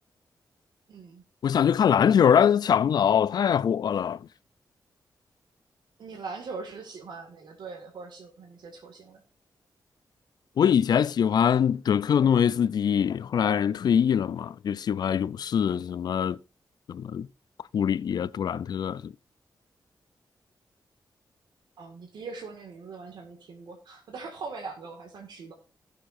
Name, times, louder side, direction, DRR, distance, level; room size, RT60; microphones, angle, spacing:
voice 1, 0.9-1.2 6.0-9.2 21.8-25.5, right 4 dB, 85° right, 2.0 m, -41 dB
voice 2, 1.4-4.2 10.6-16.4 16.9-17.3 17.7-19.1, left 8 dB, 70° left, 0.4 m, -23 dB
17.0 x 6.7 x 2.6 m
wide cardioid pair, 120°, 7 cm